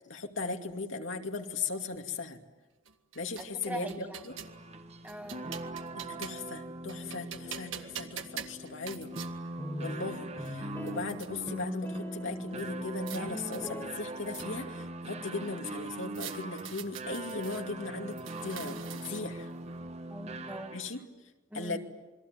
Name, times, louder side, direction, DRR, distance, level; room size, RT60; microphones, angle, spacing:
voice 1, 0.1-2.4 3.2-4.3 6.0-9.1 9.8-18.1 18.4-19.5 20.7-21.0 21.5-21.8, left 3 dB, 75° left, 4 dB, 2.5 m, -38 dB
sound 1, 2.9-4.6 5.1-6.5 6.9-9.3 10.1-10.2 10.5-11.3 12.6-13.2 13.5-14.8 16.1-17.6 18.1-19.4, right 8 dB, 75° right, 1.6 m, -45 dB
voice 2, 3.4-4.2 5.0-5.5 20.1-20.7 21.5-21.8, right 1 dB, 10° right, 5 dB, 1.8 m, -42 dB
sound 2, 4.3-21.0, right 2 dB, 35° right, 1.5 m, -42 dB
sound 3, 9.6-14.4, equal, 10° left, 2.5 m, -40 dB
28.0 x 22.5 x 9.3 m, 1.2 s
head